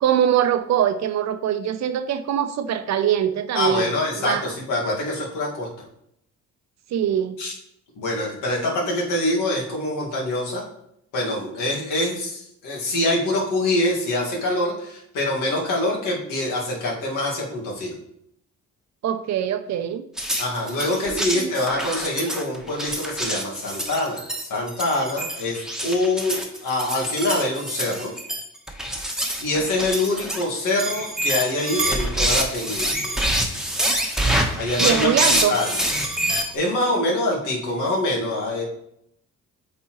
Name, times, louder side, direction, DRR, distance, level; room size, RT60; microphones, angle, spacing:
voice 1, 0.0-3.9 4.1-4.4 6.9-7.4 19.0-20.0 21.1-21.5 34.8-35.5, right 9 dB, 60° right, 11 dB, 0.6 m, -23 dB
voice 2, 3.5-5.7 7.4-7.5 8.0-10.6 11.1-17.9 20.4-28.1 29.4-33.2 34.6-35.8 36.5-38.6, left 1 dB, 90° left, -2 dB, 1.9 m, -25 dB
sound 1, 20.2-36.5, right 1 dB, ahead, 1.1 m, -26 dB
8.3 x 4.2 x 3.1 m, 0.75 s
cardioid pair, 90°, 30 cm